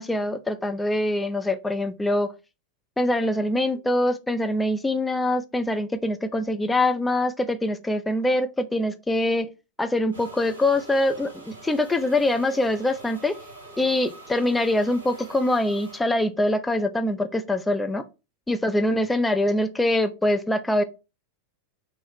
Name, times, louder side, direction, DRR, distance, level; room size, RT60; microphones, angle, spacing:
voice 1, 0.0-2.3 3.0-9.5 9.8-13.4 13.8-18.0 18.5-20.8, left 1 dB, 10° left, 0.4 m, -24 dB
sound 1, 10.1-16.0, right 2 dB, 70° right, 1.2 m, -45 dB
3.8 x 2.1 x 4.2 m
figure-of-eight pair, 90°, 0 cm